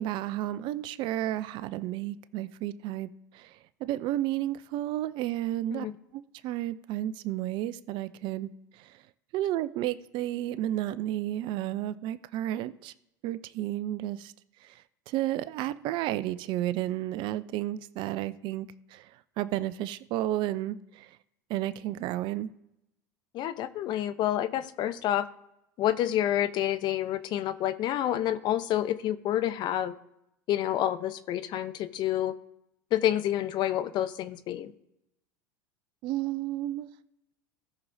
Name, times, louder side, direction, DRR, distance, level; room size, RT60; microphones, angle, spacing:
voice 1, 0.0-3.1 3.8-5.9 6.1-8.5 9.3-12.9 13.2-14.3 15.1-18.7 18.9-19.0 19.4-20.8 21.5-22.5 36.0-36.9, right 14 dB, 50° right, 15 dB, 0.6 m, -32 dB
voice 2, 23.3-25.2 25.8-29.9 30.5-32.3 32.9-34.7, left 12 dB, 45° left, 12 dB, 0.8 m, -28 dB
17.5 x 6.3 x 2.7 m, 0.85 s
hypercardioid pair, 85°, 10 cm